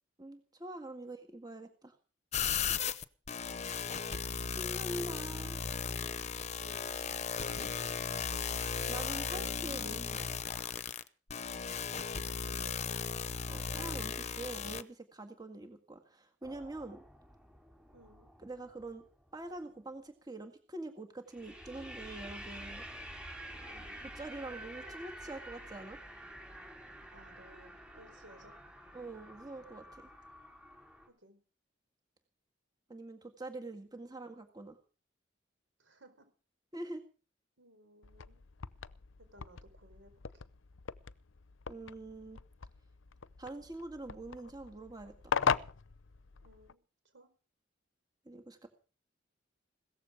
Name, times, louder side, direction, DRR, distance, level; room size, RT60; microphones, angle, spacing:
voice 1, 0.2-1.9 4.4-5.6 8.9-10.3 13.5-17.0 18.4-19.0 19.3-22.8 24.2-26.0 28.9-30.1 32.9-34.8 36.7-37.0 41.7-42.4 43.4-45.3 48.3-48.7, right 2 dB, 20° right, 5 dB, 1.9 m, -45 dB
sound 1, 2.3-14.8, left 6 dB, 35° left, 0.9 m, -36 dB
voice 2, 5.3-5.9 6.6-7.2 7.5-8.0 12.2-13.0 17.9-18.3 23.6-24.1 27.1-28.6 31.1-31.4 35.8-36.3 37.6-38.4 39.2-40.4 46.4-47.3, right 1 dB, 80° right, 8 dB, 4.6 m, -59 dB
sound 2, 16.4-19.3 21.3-31.1, right 1 dB, 5° right, 4.1 m, -49 dB
sound 3, 38.0-46.7, left 6 dB, 90° left, 0.7 m, -39 dB
17.0 x 14.0 x 5.0 m, 0.37 s
head